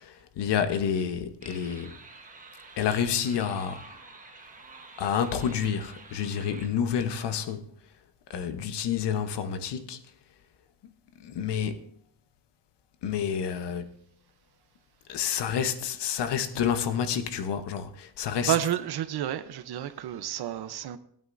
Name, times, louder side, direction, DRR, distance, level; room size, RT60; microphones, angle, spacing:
voice 1, 0.0-2.0 2.8-3.8 5.0-7.7 8.3-10.0 11.2-11.9 13.0-13.9 15.1-18.6, left 8 dB, 75° left, 1.1 m, -29 dB
sound 1, 1.4-6.7, right 3 dB, 20° right, 1.2 m, -48 dB
voice 2, 18.5-21.0, right 11 dB, 65° right, 0.8 m, -30 dB
17.0 x 8.9 x 2.6 m
cardioid pair, 135°, 42 cm